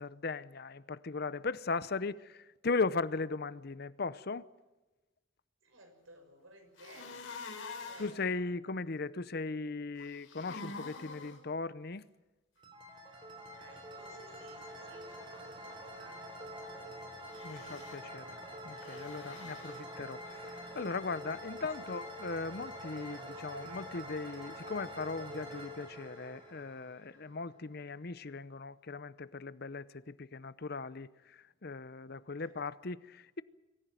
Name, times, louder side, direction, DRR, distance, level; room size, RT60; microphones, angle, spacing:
voice 1, 0.0-4.5 8.0-12.0 17.4-18.4 18.6-33.4, left 3 dB, 50° left, 0.7 m, -38 dB
voice 2, 5.6-7.2 7.8-8.5 13.5-16.9 17.5-17.8 19.6-20.0 21.8-22.1 23.2-23.3 32.4-32.6, right 1 dB, 80° right, 6.5 m, -59 dB
sound 1, 6.8-8.2 10.0-11.4 17.2-18.0 18.8-19.8, left 4 dB, 70° left, 4.5 m, -46 dB
sound 2, 12.6-27.4, equal, 25° right, 4.0 m, -46 dB
24.5 x 15.0 x 9.2 m
head